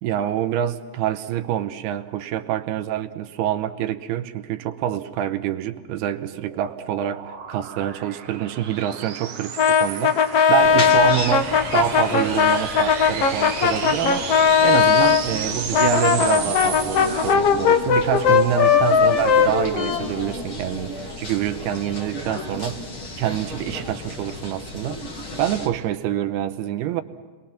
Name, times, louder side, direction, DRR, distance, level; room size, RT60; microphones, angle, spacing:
voice 1, 0.0-7.2 7.5-22.9 23.2-25.0 25.4-27.0, right 11 dB, 80° right, 2.7 m, -26 dB
sound 1, 5.8-17.3, right 7 dB, 55° right, 1.9 m, -33 dB
Brass instrument, 9.6-15.2 15.7-20.5, left 7 dB, 70° left, 1.4 m, -18 dB
sound 2, 10.6-25.7, left 1 dB, 35° left, 2.7 m, -33 dB
30.0 x 22.0 x 5.9 m
omnidirectional pair, 4.7 m